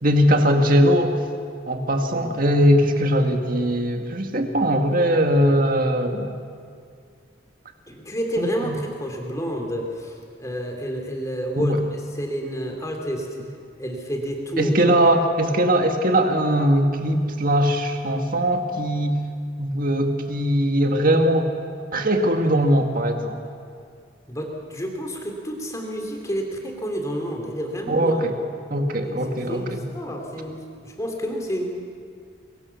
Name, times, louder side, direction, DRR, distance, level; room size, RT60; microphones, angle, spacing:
voice 1, 0.0-1.1 1.7-6.3 8.4-8.8 11.6-11.8 14.6-19.2 19.6-21.5 21.9-23.4 27.9-28.3 28.7-29.8, equal, 45° right, 4 dB, 2.1 m, -20 dB
voice 2, 7.9-13.3 13.8-14.7 24.3-28.2 29.0-30.6 30.8-31.6, equal, 15° left, 2 dB, 3.2 m, -29 dB
23.5 x 23.0 x 7.2 m, 2.3 s
head